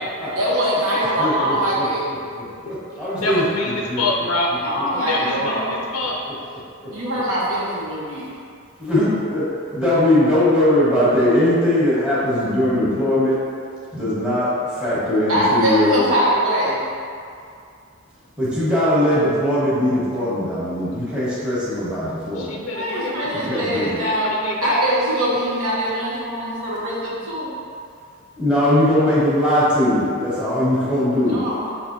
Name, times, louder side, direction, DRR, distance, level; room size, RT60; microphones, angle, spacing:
voice 1, 0.4-2.0 4.6-5.6 6.9-8.3 15.3-16.8 22.7-24.3 24.6-27.5 31.3-31.7, equal, 70° right, -6 dB, 1.1 m, -22 dB
voice 2, 1.2-4.0 4.7-4.8 6.8-6.9 8.8-9.5 9.7-13.4 13.9-16.0 18.4-22.6 23.5-24.0 28.3-31.4, left 1 dB, 5° right, -12 dB, 1.3 m, -20 dB
voice 3, 3.2-4.5 5.0-6.2 6.5-6.6 22.3-24.8, left 2 dB, 75° left, -1 dB, 0.4 m, -26 dB
6.0 x 2.9 x 2.7 m, 2.4 s
head